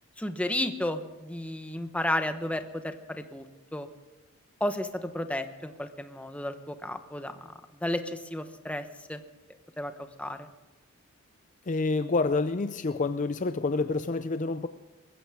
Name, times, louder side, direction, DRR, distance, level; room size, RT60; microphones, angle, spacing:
voice 1, 0.2-3.4 3.7-3.9 4.6-7.4 7.8-8.8 9.1-9.2 9.8-10.5, left 1 dB, 5° left, 8 dB, 1.0 m, -32 dB
voice 2, 11.7-14.7, left 3 dB, 35° left, 11 dB, 0.5 m, -28 dB
21.5 x 15.5 x 3.6 m, 1.2 s
head